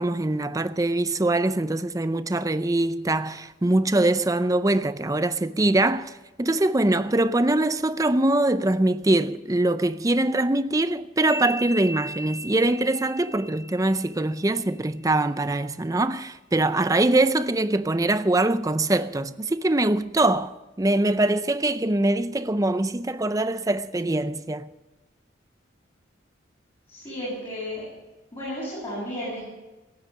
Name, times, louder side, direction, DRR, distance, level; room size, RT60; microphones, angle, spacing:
voice 1, 0.0-6.1 6.4-24.7, right 2 dB, 15° right, 0.5 m, -23 dB
sound 1, 11.3-14.8, right 1 dB, 80° right, 3.2 m, -38 dB
voice 2, 26.9-27.9 28.3-29.4, equal, 25° left, 7.7 m, -33 dB
18.0 x 9.6 x 7.7 m
head